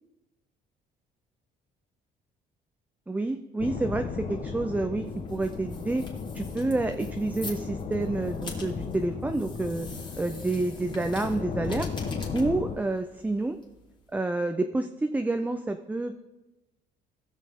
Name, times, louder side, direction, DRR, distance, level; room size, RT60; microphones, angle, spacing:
voice 1, 3.1-6.1 6.3-9.9 10.2-11.9 12.3-13.6 14.1-16.1, right 2 dB, 10° right, 7 dB, 0.5 m, -29 dB
sound 1, 3.6-12.8, left 5 dB, 45° left, 1.1 m, -35 dB
sound 2, 5.0-14.2, left 3 dB, 25° left, 2.5 m, -47 dB
18.5 x 6.4 x 3.5 m, 1.0 s
cardioid pair, 110°, 17 cm